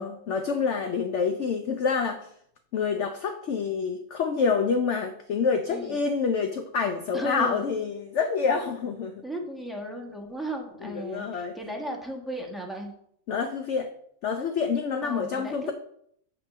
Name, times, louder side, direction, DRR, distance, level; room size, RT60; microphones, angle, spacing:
voice 1, 0.0-2.3 2.7-9.2 10.8-11.5 13.3-13.9 14.2-15.7, left 5 dB, 65° left, 6 dB, 0.8 m, -27 dB
voice 2, 5.7-6.0 7.1-7.8 9.2-12.9 15.0-15.7, right 1 dB, ahead, 0 dB, 1.0 m, -35 dB
9.0 x 3.2 x 6.6 m, 0.69 s
omnidirectional pair, 1.7 m